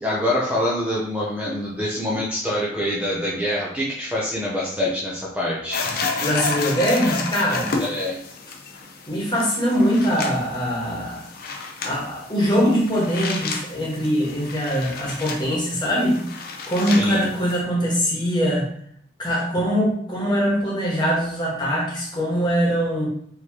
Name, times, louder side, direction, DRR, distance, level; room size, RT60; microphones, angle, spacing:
voice 1, 0.0-5.9 7.8-8.2 16.9-17.2, left 1 dB, 5° right, -6 dB, 0.6 m, -25 dB
sound 1, 5.7-17.6, left 4 dB, 55° left, 0.6 m, -31 dB
voice 2, 6.2-7.7 9.1-11.2 11.8-18.7 19.2-23.1, equal, 25° left, -3 dB, 1.3 m, -22 dB
4.7 x 3.0 x 2.9 m, 0.65 s
head